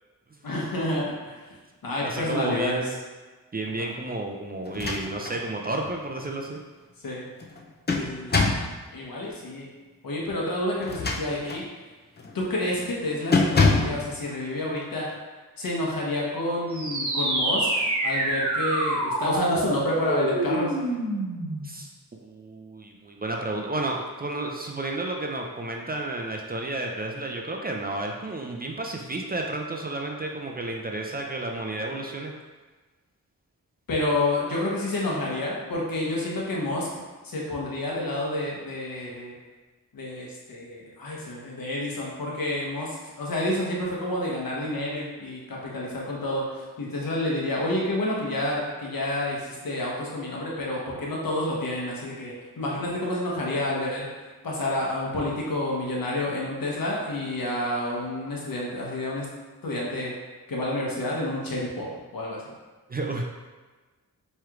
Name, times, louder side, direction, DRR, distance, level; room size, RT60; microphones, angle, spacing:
voice 1, 0.4-1.4 1.8-2.9 3.7-3.9 7.0-7.3 7.9-8.6 8.9-9.7 10.0-11.6 12.3-15.1 15.6-20.9 33.9-36.9 37.2-39.3 39.9-54.1 54.4-59.3 59.6-60.1 60.5-61.9 62.1-62.4, left 1 dB, 70° left, -3 dB, 1.1 m, -29 dB
voice 2, 2.0-3.0 3.5-6.6 21.6-32.3 62.9-63.2, right 2 dB, 25° right, 1 dB, 0.4 m, -32 dB
sound 1, 4.7-5.4 5.8-5.9 7.4-8.7 10.8-11.7 12.2-12.4 12.7-12.9 13.3-14.0, left 3 dB, 30° left, 0.5 m, -24 dB
sound 2, 16.7-21.7, right 1 dB, 55° right, 1.0 m, -27 dB
4.5 x 3.2 x 2.4 m, 1.3 s
cardioid pair, 55°, 36 cm